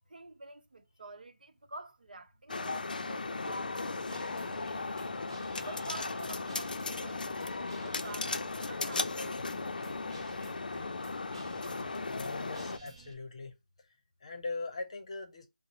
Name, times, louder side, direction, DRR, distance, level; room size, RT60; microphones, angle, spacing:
voice 1, 0.1-4.7 5.6-10.3, right 3 dB, 85° right, 0.7 m, -49 dB
sound 1, 2.5-12.8, left 3 dB, 80° left, 0.4 m, -36 dB
Guitar, 3.5-13.1, right 4 dB, 35° right, 0.5 m, -53 dB
voice 2, 12.0-13.6 14.2-15.5, left 3 dB, 45° left, 0.7 m, -40 dB
3.9 x 2.0 x 2.9 m
figure-of-eight pair, 170°, 5 cm